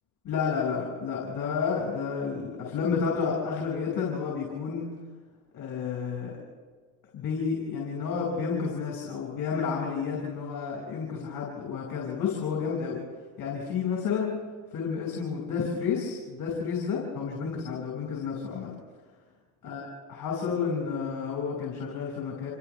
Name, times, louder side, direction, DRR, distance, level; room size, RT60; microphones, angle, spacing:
voice 1, 0.2-4.9 5.5-6.4 7.1-13.0 13.4-14.3 14.7-18.7 19.6-22.5, left 6 dB, 55° left, -3 dB, 6.2 m, -31 dB
28.0 x 27.5 x 3.5 m, 1.5 s
supercardioid pair, 75°, 41 cm